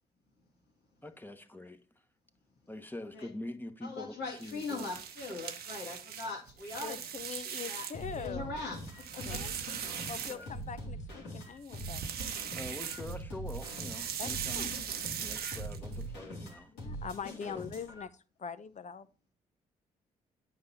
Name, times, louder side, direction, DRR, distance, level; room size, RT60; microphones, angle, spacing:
voice 1, 1.0-1.8 2.7-4.9 10.1-10.5 12.5-14.8 15.2-16.7 17.4-17.7, left 1 dB, 10° left, 1.3 m, -44 dB
voice 2, 3.8-7.0 7.6-9.4, left 3 dB, 75° left, 2.3 m, -41 dB
sound 1, 4.3-8.2 8.6-10.8 11.6-13.2 13.5-16.0, right 8 dB, 70° right, 1.0 m, -40 dB
voice 3, 6.8-8.5 9.2-9.5 10.1-12.3 14.2-14.3 14.6-14.7 16.7-19.1, left 6 dB, 45° left, 0.8 m, -43 dB
sound 2, 7.9-18.0, right 1 dB, 90° left, 2.9 m, -43 dB
9.5 x 5.2 x 4.2 m
hypercardioid pair, 45°, 17 cm